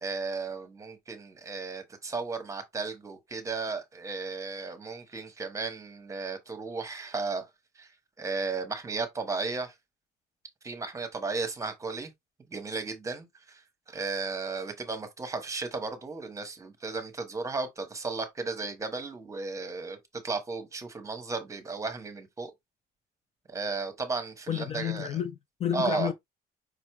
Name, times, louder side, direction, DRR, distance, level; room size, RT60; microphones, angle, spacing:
voice 1, 0.0-7.4 7.8-7.9 8.2-9.7 10.6-12.1 12.5-13.6 13.9-20.0 20.2-22.5 23.5-25.1 25.7-26.1, right 4 dB, 20° right, 1.0 m, -34 dB
voice 2, 24.5-26.1, left 9 dB, 40° left, 0.4 m, -31 dB
5.1 x 2.2 x 4.6 m
cardioid pair, 160°, 17 cm